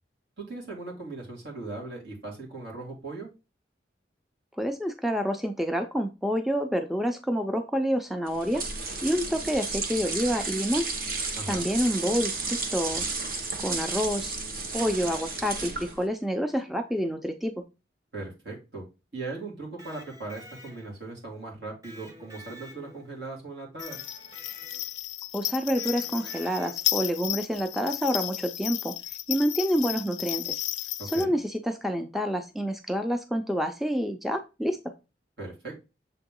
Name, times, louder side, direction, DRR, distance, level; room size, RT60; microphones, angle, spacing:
voice 1, 0.4-3.3 11.4-11.7 18.1-18.8 19.1-24.1 31.0-31.4 35.4-35.8, right 3 dB, 70° right, -2 dB, 2.8 m, -39 dB
voice 2, 4.6-8.6 9.0-10.9 11.5-13.0 13.6-14.4 14.7-17.5 25.3-29.0 29.3-30.6 31.1-34.9, equal, ahead, 6 dB, 0.4 m, -28 dB
sound 1, 8.3-16.1, right 3 dB, 55° right, 1.0 m, -33 dB
Electric guitar, 19.6-21.1 21.8-23.2 23.8-25.1 25.8-27.0, equal, 20° right, 1.1 m, -49 dB
sound 2, 23.8-31.2, left 15 dB, 85° left, 0.5 m, -33 dB
6.9 x 3.9 x 3.7 m, 0.28 s
head